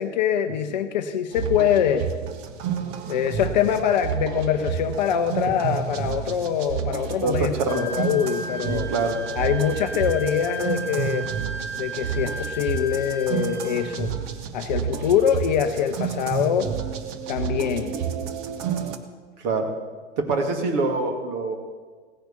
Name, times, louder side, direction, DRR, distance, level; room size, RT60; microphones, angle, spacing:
voice 1, 0.0-2.1 3.1-8.9 9.4-11.3 11.8-14.1 14.5-16.7 17.3-18.0, left 8 dB, 35° left, 8 dB, 0.8 m, -24 dB
sound 1, 1.3-19.0, right 8 dB, 10° right, 0.4 m, -30 dB
voice 2, 7.2-7.9 8.6-9.2 19.4-19.7 20.2-21.6, right 3 dB, 35° right, 4 dB, 2.4 m, -25 dB
Wind instrument woodwind instrument, 7.7-13.9, right 1 dB, 15° left, 3.8 m, -35 dB
17.0 x 10.5 x 6.8 m, 1.5 s
figure-of-eight pair, 115°, 38 cm